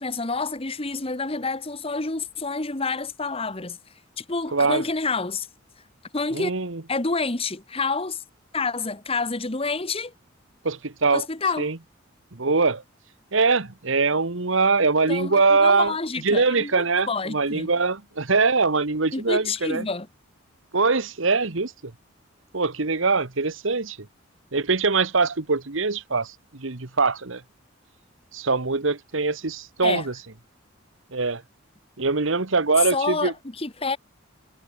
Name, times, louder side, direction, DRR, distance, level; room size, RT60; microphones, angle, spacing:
voice 1, 0.0-3.8 4.2-5.5 6.1-6.5 6.9-8.2 8.5-10.1 11.1-11.7 15.1-16.7 17.1-17.7 19.1-20.1 29.8-30.1 32.9-34.0, left 3 dB, 30° left, 1.4 m, -28 dB
voice 2, 4.5-4.8 6.3-6.8 10.6-11.3 11.6-11.8 12.3-12.8 13.3-15.9 16.2-19.9 20.7-21.7 22.5-24.0 24.5-27.4 28.3-30.1 31.1-31.4 32.0-33.3, right 4 dB, 70° right, 1.4 m, -22 dB
head